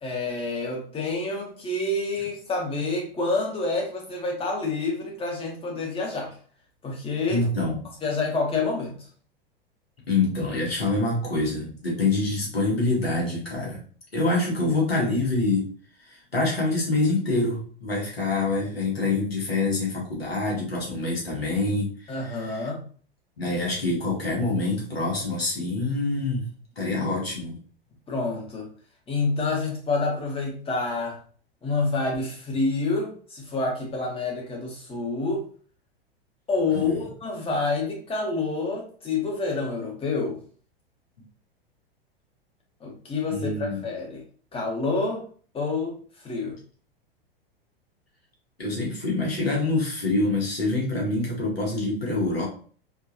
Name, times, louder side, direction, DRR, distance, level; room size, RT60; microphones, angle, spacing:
voice 1, 0.0-6.4 6.8-7.4 8.0-9.0 22.1-22.8 28.1-28.7 29.1-31.2 31.6-35.4 36.5-40.4 42.8-44.2 44.5-45.2 45.5-46.6, left 3 dB, 20° left, 0 dB, 1.5 m, -28 dB
voice 2, 7.3-7.8 10.1-13.8 14.1-15.7 16.1-22.7 23.4-26.5 26.8-27.6 36.7-37.1 43.3-43.9 48.6-52.5, left 2 dB, 80° left, -3 dB, 1.9 m, -26 dB
4.5 x 3.1 x 2.8 m, 0.43 s
figure-of-eight pair, 90°, 30 cm